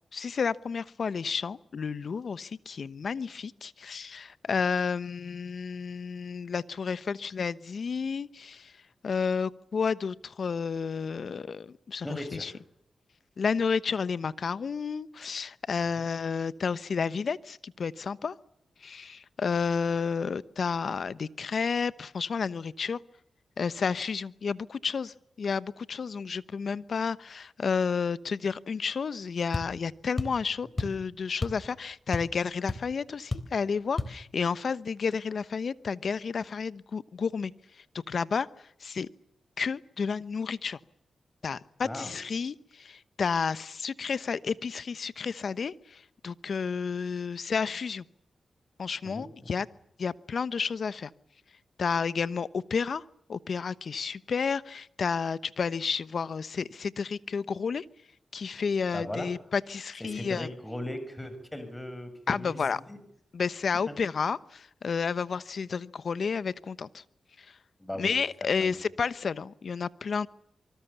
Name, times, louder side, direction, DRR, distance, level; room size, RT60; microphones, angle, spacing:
voice 1, 0.1-8.7 9.0-12.5 13.4-18.3 18.8-23.0 23.6-37.5 38.1-38.5 38.8-39.1 39.6-40.8 41.4-48.0 48.8-49.7 50.0-51.1 51.8-53.0 53.3-57.8 58.3-60.5 62.3-62.8 63.3-67.0 67.4-67.5 68.0-70.3, left 5 dB, 65° left, 16 dB, 1.0 m, -31 dB
voice 2, 12.0-12.6 16.0-16.1 30.8-30.9 41.8-42.1 49.0-49.3 58.9-59.3 60.0-63.0 67.8-68.1 68.6-68.8, left 1 dB, 15° left, 9 dB, 7.0 m, -38 dB
sound 1, 29.5-29.7 30.2-30.4 30.8-31.0 31.4-31.7 31.9-32.4 32.7-32.8 33.3-33.5 34.0-34.2, left 2 dB, 35° left, 3.4 m, -32 dB
26.0 x 24.5 x 7.0 m, 0.72 s
cardioid pair, 45°, 0 cm